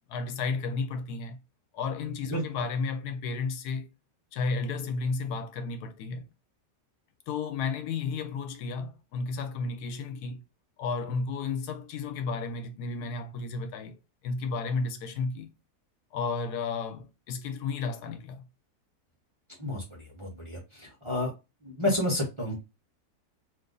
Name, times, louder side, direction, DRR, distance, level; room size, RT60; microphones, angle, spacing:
voice 1, 0.1-1.4 1.7-3.9 4.3-6.3 7.3-10.4 10.8-15.5 16.1-18.5, left 4 dB, 85° left, 1.2 m, -33 dB
voice 2, 19.6-21.3 21.6-22.6, left 1 dB, 25° right, 0.6 m, -30 dB
2.7 x 2.5 x 3.7 m
omnidirectional pair, 1.7 m